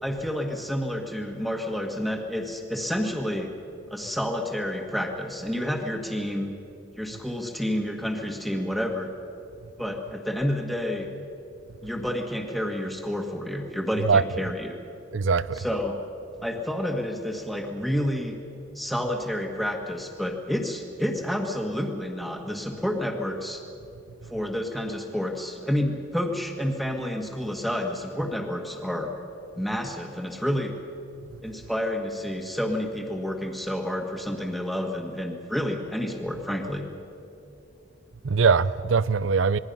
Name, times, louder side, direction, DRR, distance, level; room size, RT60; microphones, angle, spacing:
voice 1, 0.0-3.5 3.9-6.5 7.0-9.1 9.8-11.1 11.8-14.8 15.5-16.0 16.4-18.4 18.8-23.6 24.3-29.1 29.6-30.7 31.4-36.8, equal, ahead, 1.8 m, -29 dB
voice 2, 15.1-15.6 38.2-39.6, right 5 dB, 65° right, 0.6 m, -21 dB
26.5 x 21.5 x 5.6 m
head